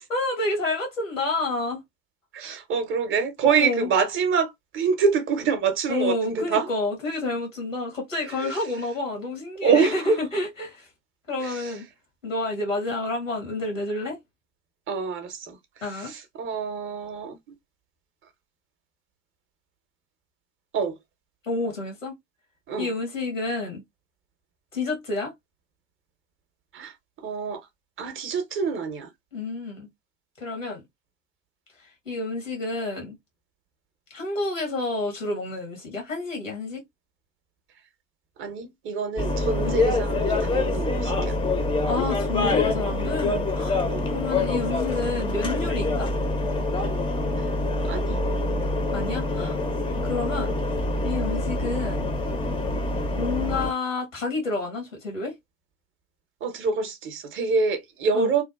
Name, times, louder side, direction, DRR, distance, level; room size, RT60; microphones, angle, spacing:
voice 1, 0.1-1.8 3.4-3.9 5.9-10.9 11.3-11.9 12.2-14.2 15.8-16.1 21.4-22.1 22.8-23.8 24.7-25.3 29.3-29.9 30.4-30.8 32.0-33.2 34.1-36.8 39.6-39.8 41.8-43.8 44.1-46.1 48.9-49.6 50.0-50.6 51.0-52.1 53.2-55.3 58.1-58.3, left 2 dB, 85° left, 1.0 m, -29 dB
voice 2, 2.3-6.7 8.4-8.5 9.6-10.2 11.4-11.6 14.9-15.4 16.1-17.4 20.7-20.9 22.7-22.9 26.7-26.9 27.2-27.6 28.0-29.1 38.4-41.3 43.9-44.1 47.9-48.1 56.4-58.4, right 5 dB, 35° right, 0.6 m, -25 dB
sound 1, 39.2-53.7, left 2 dB, 15° left, 0.4 m, -26 dB
2.6 x 2.1 x 2.2 m
figure-of-eight pair, 70°, 38 cm